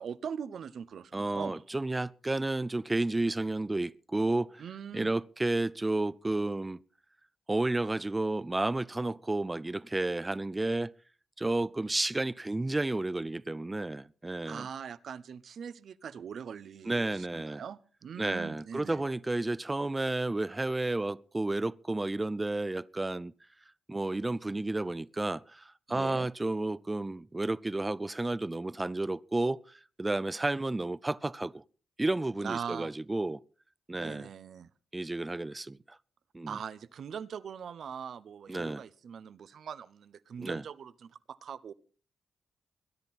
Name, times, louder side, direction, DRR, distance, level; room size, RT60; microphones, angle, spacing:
voice 1, 0.0-1.6 4.6-5.1 14.4-19.0 25.9-26.3 32.4-32.9 34.0-34.7 36.5-41.7, right 7 dB, 70° right, 0.8 m, -41 dB
voice 2, 1.1-4.6 4.9-6.8 7.5-10.9 11.4-14.7 16.9-17.6 18.2-23.3 23.9-31.6 32.0-33.4 33.9-34.3 34.9-36.0 36.3-36.6 38.5-38.8 40.4-40.6, right 2 dB, 20° right, 0.6 m, -31 dB
22.0 x 10.5 x 4.2 m
supercardioid pair, 50°, 0 cm